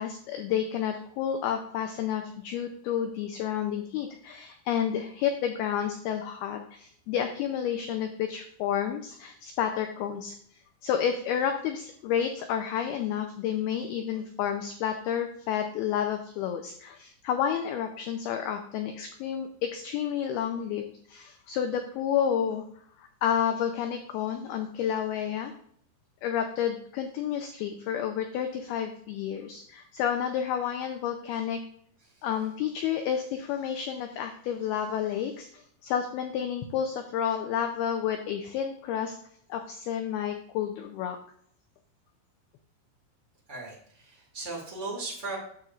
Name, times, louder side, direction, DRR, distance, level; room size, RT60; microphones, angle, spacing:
voice 1, 0.0-10.3 10.8-22.6 23.0-25.5 26.2-31.6 32.2-39.2 39.5-41.2, left 9 dB, 90° left, 5 dB, 2.2 m, -30 dB
voice 2, 43.5-45.4, right 3 dB, 80° right, -4 dB, 0.6 m, -37 dB
9.6 x 7.1 x 2.4 m, 0.63 s
omnidirectional pair, 5.3 m